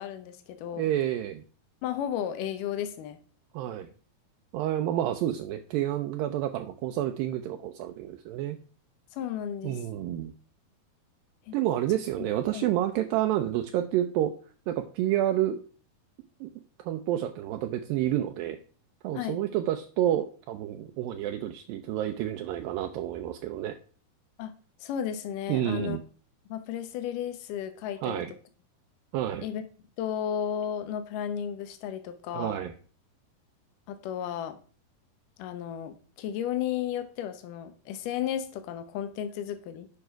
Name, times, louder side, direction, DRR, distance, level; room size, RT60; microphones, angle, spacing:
voice 1, 0.0-0.9 1.8-3.2 9.1-9.8 11.5-11.6 12.5-12.7 19.2-19.4 24.4-24.5 24.8-26.0 26.5-28.2 29.4-29.6 30.0-32.6 33.9-34.6 35.4-39.9, left 9 dB, 70° left, 9 dB, 2.3 m, -33 dB
voice 2, 0.8-1.4 3.5-3.9 4.5-8.6 9.6-10.3 11.5-14.3 14.7-15.6 16.4-16.5 16.8-18.6 19.0-23.8 25.5-26.0 28.0-28.3 29.1-29.5 32.3-32.7, right 12 dB, 80° right, 5 dB, 2.2 m, -29 dB
8.7 x 5.4 x 4.6 m, 0.39 s
omnidirectional pair, 4.4 m